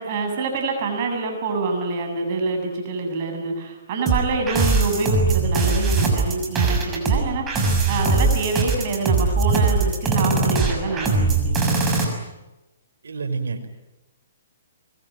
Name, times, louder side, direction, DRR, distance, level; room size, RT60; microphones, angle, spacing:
voice 1, 0.0-11.8, right 3 dB, 45° right, 3 dB, 7.9 m, -26 dB
sound 1, 4.1-12.0, right 3 dB, 20° right, 6.4 m, -20 dB
voice 2, 13.0-13.7, right 4 dB, 80° right, 5 dB, 5.7 m, -28 dB
24.5 x 23.0 x 9.5 m, 0.99 s
hypercardioid pair, 140°, 0 cm